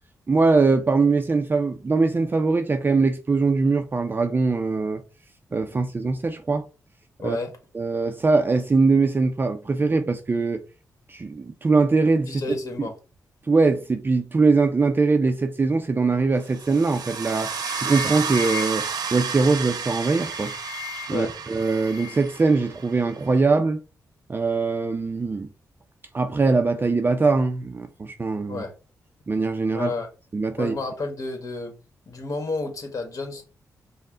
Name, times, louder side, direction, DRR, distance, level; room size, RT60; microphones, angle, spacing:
voice 1, 0.3-5.0 5.5-6.6 7.2-7.4 7.7-10.6 11.1-12.4 12.8-12.9 13.5-18.8 19.1-20.5 21.1-23.8 24.3-25.5 26.1-28.6 29.3-29.9 30.3-30.7, right 3 dB, 30° right, 0.5 m, -22 dB
voice 2, 7.2-7.5 12.3-12.9 21.1-21.3 28.5-28.7 29.7-30.1 30.6-31.7 32.1-33.4, left 3 dB, 50° left, 1.4 m, -30 dB
sound 1, 16.5-23.4, right 6 dB, 80° right, 0.8 m, -32 dB
sound 2, 16.9-17.1 17.4-19.0 19.8-21.3 21.6-22.4, left 8 dB, 75° left, 1.0 m, -38 dB
5.3 x 2.1 x 3.7 m
cardioid pair, 75°, 7 cm